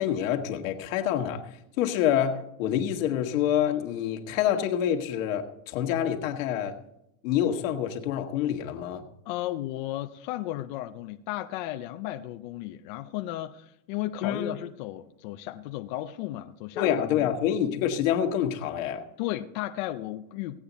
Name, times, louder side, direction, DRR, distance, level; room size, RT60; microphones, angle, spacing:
voice 1, 0.0-1.4 1.8-6.8 7.2-9.0 14.2-14.6 16.7-19.0, left 10 dB, 70° left, 5 dB, 1.5 m, -27 dB
voice 2, 9.3-17.3 19.2-20.6, left 15 dB, 40° left, 6 dB, 0.4 m, -34 dB
17.0 x 8.7 x 4.0 m, 0.81 s
supercardioid pair, 160°, 41 cm